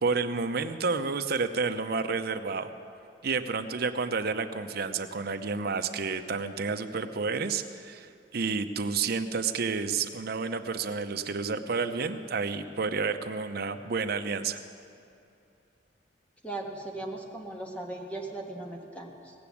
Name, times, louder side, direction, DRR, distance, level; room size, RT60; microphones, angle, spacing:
voice 1, 0.0-2.7 3.2-14.6, right 4 dB, 60° right, 8 dB, 0.7 m, -30 dB
voice 2, 16.4-19.3, right 2 dB, 10° left, 0 dB, 1.3 m, -38 dB
17.5 x 6.9 x 8.5 m, 2.7 s
head